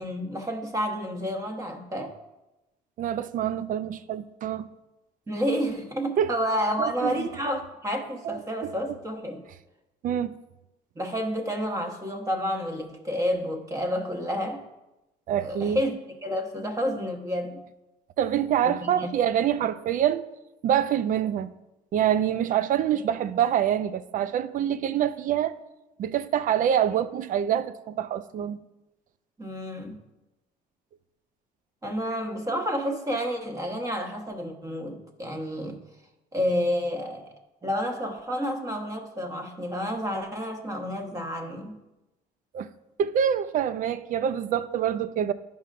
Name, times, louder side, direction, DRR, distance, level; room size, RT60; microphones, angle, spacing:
voice 1, 0.0-2.2 5.3-9.4 10.9-14.6 15.4-17.6 18.6-19.1 29.4-30.0 31.8-35.8 36.3-37.3 37.6-41.8, equal, 20° right, 1.2 m, -30 dB
voice 2, 3.0-4.7 6.2-6.3 6.8-7.3 8.2-8.7 10.0-10.3 15.3-15.8 18.2-20.2 20.6-21.5 21.9-25.6 26.0-28.6 42.5-42.7 43.0-45.3, right 9 dB, 50° right, 0.5 m, -26 dB
12.5 x 5.4 x 2.5 m
cardioid pair, 110°, 17 cm